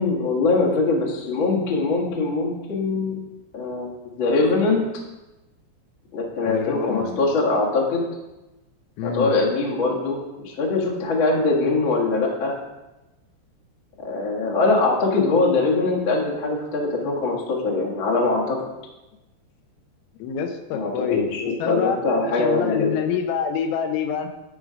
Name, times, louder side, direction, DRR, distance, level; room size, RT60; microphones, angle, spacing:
voice 1, 0.0-3.2 3.5-4.8 6.1-8.0 9.0-12.5 14.0-18.6 20.7-23.0, left 3 dB, 70° left, -3 dB, 1.1 m, -22 dB
voice 2, 6.4-7.2 9.0-9.3 20.2-22.0 22.3-24.3, left 7 dB, 85° left, 6 dB, 3.3 m, -26 dB
10.0 x 4.9 x 5.1 m, 1.0 s
omnidirectional pair, 5.4 m